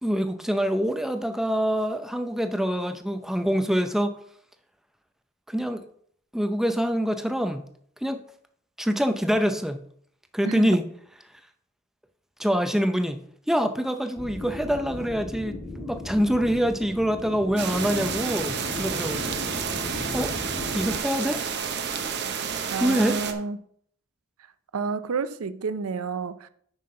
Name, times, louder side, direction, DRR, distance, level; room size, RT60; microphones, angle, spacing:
voice 1, 0.0-4.2 5.5-5.8 6.3-7.7 8.0-8.2 8.8-9.8 10.3-10.9 11.2-11.4 12.4-19.4 20.1-20.3 20.7-21.4 22.8-23.2, equal, ahead, 0.5 m, -25 dB
voice 2, 10.4-10.8 22.7-23.6 24.7-26.5, right 4 dB, 85° right, 0.5 m, -30 dB
sound 1, 14.2-21.0, left 2 dB, 25° left, 2.1 m, -36 dB
sound 2, 17.6-23.3, right 7 dB, 50° right, 0.8 m, -30 dB
9.7 x 5.6 x 3.8 m
head